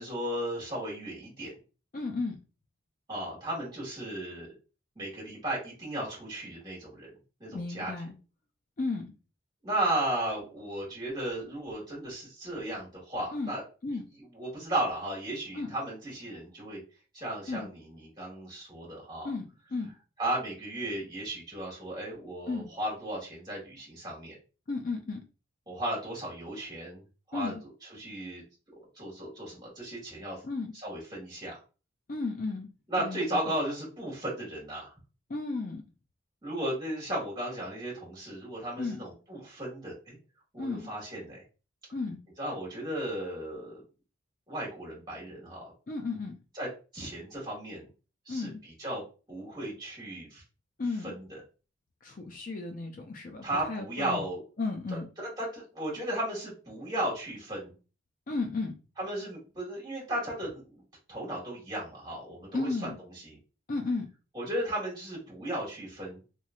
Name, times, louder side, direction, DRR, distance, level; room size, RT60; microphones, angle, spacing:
voice 1, 0.0-1.5 3.1-4.5 5.0-7.1 7.4-7.9 9.6-13.6 13.9-14.0 14.3-16.8 17.1-19.3 20.2-24.4 25.7-27.0 27.3-27.5 28.0-28.4 29.0-30.4 30.8-31.5 32.9-34.9 36.4-40.2 40.5-41.4 42.4-43.8 44.5-45.7 46.6-46.7 46.9-47.9 48.3-48.5 48.8-49.0 49.3-50.4 51.0-51.4 53.4-54.4 55.4-57.7 59.0-60.8 61.1-62.9 63.2-63.4 64.3-66.2, right 1 dB, 20° right, -4 dB, 1.8 m, -35 dB
voice 2, 1.9-2.4 7.5-8.2 8.8-9.1 13.3-13.5 13.8-14.0 15.5-15.7 17.5-17.6 19.2-19.4 19.7-19.9 22.5-22.7 24.7-25.2 27.3-27.6 30.4-30.7 32.1-32.7 33.0-33.5 35.3-35.8 38.8-39.0 40.6-40.9 41.9-42.2 45.9-46.3 48.3-48.6 50.8-51.1 52.0-54.2 54.6-55.1 58.3-58.7 62.5-63.0 63.7-64.1, left 3 dB, 40° left, 3 dB, 0.4 m, -34 dB
3.0 x 3.0 x 2.3 m, 0.33 s
head